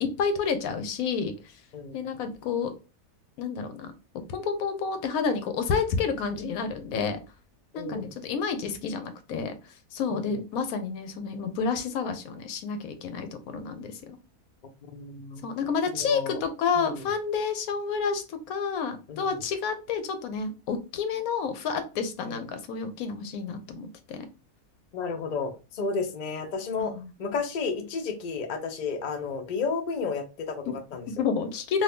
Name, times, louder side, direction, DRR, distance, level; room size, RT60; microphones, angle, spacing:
voice 1, 0.0-1.3 1.9-2.7 3.4-3.9 4.3-7.2 7.7-9.5 9.9-14.2 15.4-24.2 26.8-27.1 30.7-30.8 31.1-31.8, left 5 dB, 75° left, 9 dB, 1.0 m, -30 dB
voice 2, 7.7-8.1 10.1-10.2 14.9-15.4 16.0-16.4 16.8-16.9 19.1-19.3 22.2-22.4 24.9-26.9 27.2-31.1, left 4 dB, 55° left, 6 dB, 0.5 m, -32 dB
2.7 x 2.6 x 3.4 m, 0.30 s
omnidirectional pair, 1.5 m